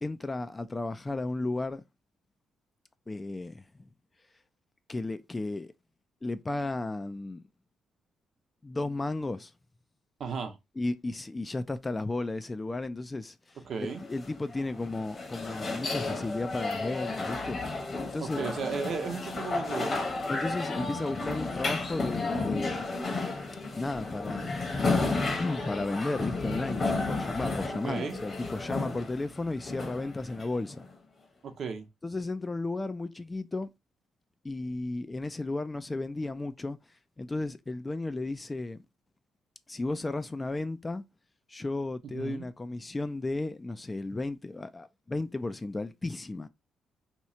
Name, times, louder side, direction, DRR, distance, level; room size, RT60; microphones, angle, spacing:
voice 1, 0.0-1.8 3.1-3.9 4.9-5.7 6.2-7.4 8.6-9.5 10.8-17.6 18.1-18.4 20.3-22.9 23.8-24.6 25.4-30.9 32.0-33.7 34.4-36.8 37.2-38.8 39.7-41.0 41.5-46.5, left 2 dB, 20° left, 0.3 m, -34 dB
voice 2, 10.2-10.6 13.7-14.0 18.2-20.0 27.8-28.2 31.4-31.9 42.0-42.5, right 5 dB, 60° right, 0.8 m, -35 dB
sound 1, 13.9-30.9, left 3 dB, 40° left, 1.1 m, -33 dB
2.9 x 2.3 x 4.2 m
cardioid pair, 90°, 0 cm